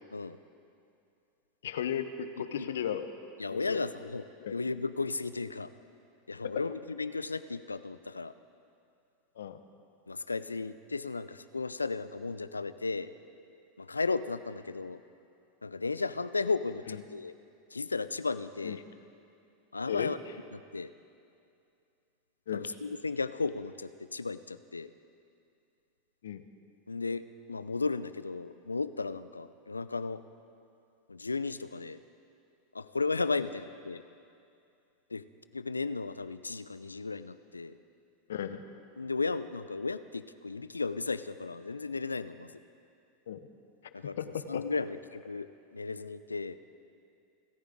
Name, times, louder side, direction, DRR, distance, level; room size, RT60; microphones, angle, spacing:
voice 1, 1.6-3.1 3.5-3.8 4.4-4.5 9.4-9.6 16.9-17.0 18.6-18.8 19.9-20.3 22.5-22.7 26.2-26.4 38.3-38.6 43.3-43.4 44.2-44.6, left 9 dB, 70° left, 10 dB, 0.9 m, -35 dB
voice 2, 3.4-4.2 4.5-5.7 6.3-8.3 10.1-13.1 13.8-15.0 15.6-17.3 17.7-18.8 19.7-20.2 20.5-20.9 22.5-24.9 26.9-27.2 27.5-30.2 31.1-32.0 32.7-34.0 35.1-35.2 35.5-37.8 39.0-42.6 43.9-44.2 44.5-45.5 45.7-46.6, left 4 dB, 90° left, 14 dB, 0.5 m, -34 dB
28.0 x 14.0 x 3.7 m, 2.5 s
figure-of-eight pair, 85°, 0 cm